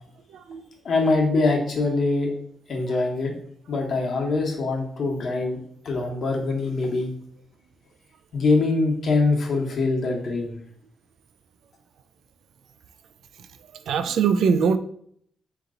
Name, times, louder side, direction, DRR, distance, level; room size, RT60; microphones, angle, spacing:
voice 1, 0.8-2.3 2.7-3.3 3.7-5.6 5.8-7.1 8.3-10.5, left 3 dB, 60° left, 0 dB, 1.1 m, -23 dB
voice 2, 13.9-14.8, right 6 dB, 80° right, 11 dB, 0.3 m, -21 dB
3.9 x 2.9 x 3.8 m, 0.65 s
cardioid pair, 95°, 0 cm